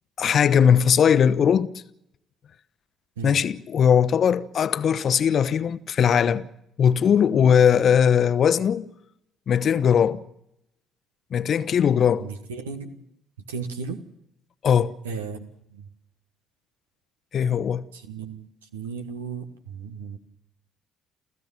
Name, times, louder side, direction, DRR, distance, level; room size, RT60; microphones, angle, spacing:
voice 1, 0.2-1.8 3.2-6.5 6.8-8.9 9.5-10.2 11.3-12.3 14.6-14.9 17.3-17.9, left 8 dB, 45° left, 1.0 m, -19 dB
voice 2, 12.2-13.0 13.5-14.0 15.0-15.9 17.9-20.2, right 5 dB, 75° right, 1.6 m, -35 dB
29.5 x 15.0 x 7.3 m
figure-of-eight pair, 50°, 0 cm